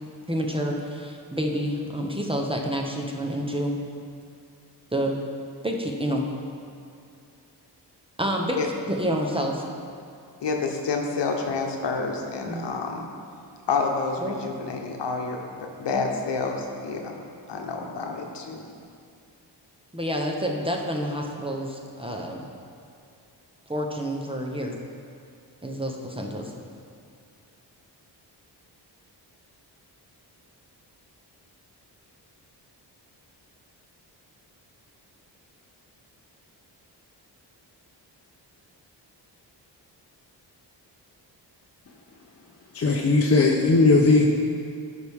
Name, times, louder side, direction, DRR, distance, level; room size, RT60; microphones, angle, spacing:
voice 1, 0.3-3.8 4.9-5.2 5.6-6.2 8.2-8.6 8.9-9.7 11.5-11.6 12.5-12.7 14.2-14.4 15.9-16.1 19.9-22.5 23.7-24.7 25.6-26.5, equal, 15° right, 0 dB, 0.8 m, -28 dB
voice 2, 10.4-13.1 13.7-17.2 17.5-18.6, left 4 dB, 75° left, 2 dB, 1.0 m, -29 dB
voice 3, 42.7-44.2, left 3 dB, 35° left, -1 dB, 0.7 m, -18 dB
11.5 x 4.8 x 3.6 m, 2.4 s
cardioid pair, 80°, 43 cm